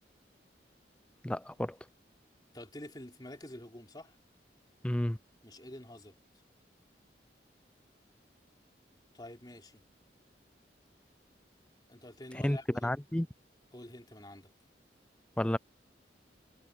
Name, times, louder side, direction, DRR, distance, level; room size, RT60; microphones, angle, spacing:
voice 1, 1.2-1.8 4.8-5.2 12.4-13.3 15.4-15.6, left 1 dB, 5° left, 0.4 m, -31 dB
voice 2, 2.5-4.2 5.4-6.2 9.1-9.8 11.9-12.9 13.7-14.5, left 1 dB, 25° left, 3.3 m, -48 dB
head